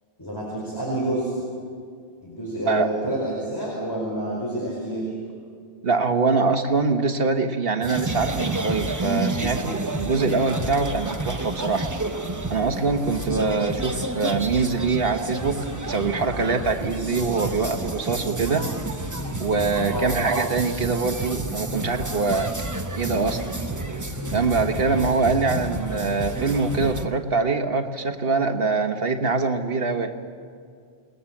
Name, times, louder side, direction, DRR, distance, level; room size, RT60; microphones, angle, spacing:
voice 1, 0.2-1.4 2.2-5.2 19.9-20.2, right 1 dB, 20° left, -4 dB, 4.8 m, -28 dB
voice 2, 5.8-11.9 12.5-18.7 19.4-22.5 23.0-23.6 24.3-30.2, right 4 dB, 65° right, 6 dB, 1.6 m, -24 dB
sound 1, 7.8-27.1, right 2 dB, 20° right, 0.9 m, -30 dB
28.0 x 20.0 x 7.3 m, 2.2 s
omnidirectional pair, 1.1 m